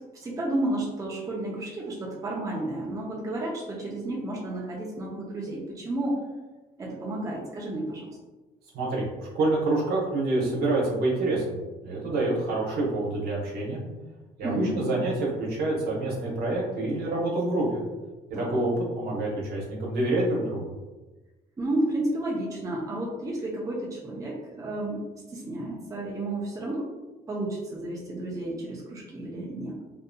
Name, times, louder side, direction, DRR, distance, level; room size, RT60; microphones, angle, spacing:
voice 1, 0.1-6.2 6.8-8.1 14.4-15.0 18.3-18.6 21.6-26.9 27.3-29.8, right 1 dB, 20° right, -4 dB, 0.6 m, -32 dB
voice 2, 8.7-9.1 9.3-13.8 14.4-17.8 18.3-20.7, right 2 dB, 70° right, -4 dB, 0.9 m, -27 dB
2.6 x 2.6 x 2.2 m, 1.2 s
cardioid pair, 110°, 17 cm